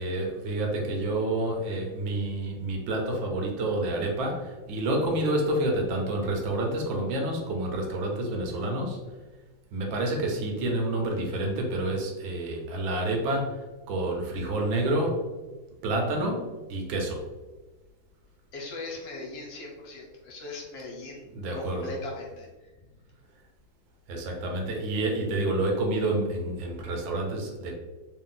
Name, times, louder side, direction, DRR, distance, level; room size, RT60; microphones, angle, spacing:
voice 1, 0.0-9.0 9.7-15.3 15.8-17.2 21.3-21.9 24.1-27.7, right 1 dB, 90° right, 1 dB, 1.6 m, -29 dB
voice 2, 18.5-21.2 21.5-22.7, left 2 dB, 75° left, -1 dB, 1.4 m, -39 dB
3.6 x 2.4 x 3.8 m, 1.2 s
omnidirectional pair, 2.1 m